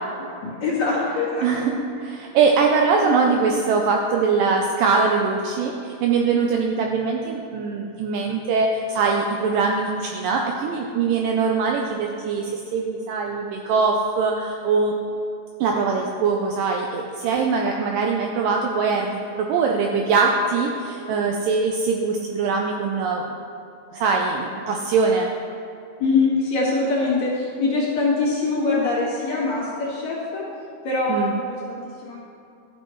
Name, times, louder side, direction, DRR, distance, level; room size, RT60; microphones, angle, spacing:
voice 1, 0.4-1.8 3.0-3.3 26.0-30.4 30.8-32.2, left 3 dB, 55° left, -7 dB, 2.7 m, -23 dB
voice 2, 1.4-1.7 2.0-15.0 15.6-23.2 23.9-25.3 31.1-31.3, right 4 dB, 80° right, 1 dB, 2.0 m, -22 dB
13.5 x 7.6 x 3.1 m, 2.6 s
omnidirectional pair, 4.4 m